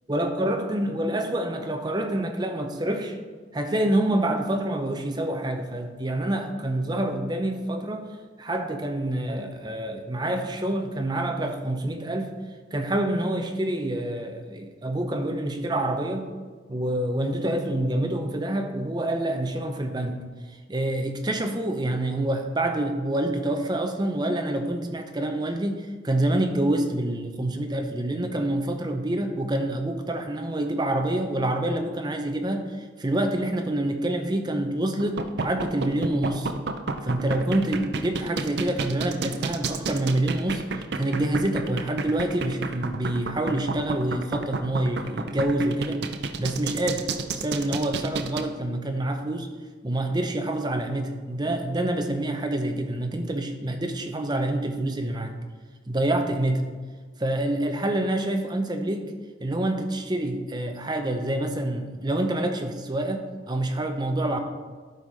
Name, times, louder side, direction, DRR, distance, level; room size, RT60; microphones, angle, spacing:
voice 1, 0.1-3.2 3.5-8.1 8.4-12.4 12.7-16.4 16.7-20.2 20.7-36.5 37.0-37.8 38.0-46.0 46.4-49.5 49.8-55.4 55.9-56.7 57.2-59.1 59.4-64.4, right 1 dB, 20° right, 5 dB, 0.7 m, -27 dB
sound 1, 35.0-48.4, right 4 dB, 60° right, 0.5 m, -30 dB
12.0 x 4.9 x 4.1 m, 1.5 s
head